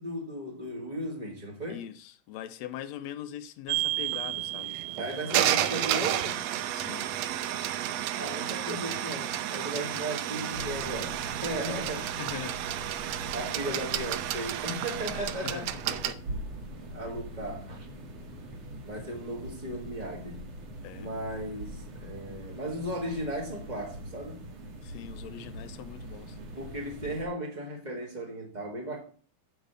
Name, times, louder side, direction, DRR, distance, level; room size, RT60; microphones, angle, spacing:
voice 1, 0.0-1.8 5.0-6.5 8.1-12.1 13.3-15.7 16.8-17.8 18.8-20.7 21.0-24.4 26.5-29.0, right 1 dB, 25° right, 0.9 m, -36 dB
voice 2, 1.7-4.8 6.7-7.1 12.2-12.6 13.0-13.3 15.1-16.2 20.8-21.1 24.8-26.4, left 11 dB, 80° left, 1.7 m, -42 dB
sound 1, 3.7-16.1, right 12 dB, 80° right, 1.6 m, -31 dB
sound 2, 10.5-27.3, equal, 60° right, 2.6 m, -43 dB
8.9 x 5.7 x 6.8 m
omnidirectional pair, 3.5 m